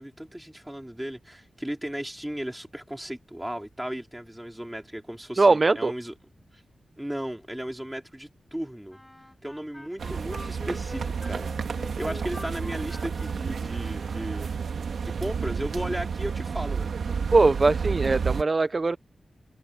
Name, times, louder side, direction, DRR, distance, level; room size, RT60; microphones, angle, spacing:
voice 1, 0.0-6.1 6.5-6.6 7.0-9.0 9.4-14.5 15.0-17.2, equal, 5° right, 4.1 m, -36 dB
voice 2, 5.4-5.9 17.3-19.0, right 3 dB, 35° right, 0.4 m, -21 dB
Wind instrument woodwind instrument, 8.9-14.9, left 1 dB, 10° left, 4.0 m, -45 dB
sound 1, 10.0-18.4, right 6 dB, 80° right, 2.1 m, -31 dB
wide cardioid pair, 145°, 0 cm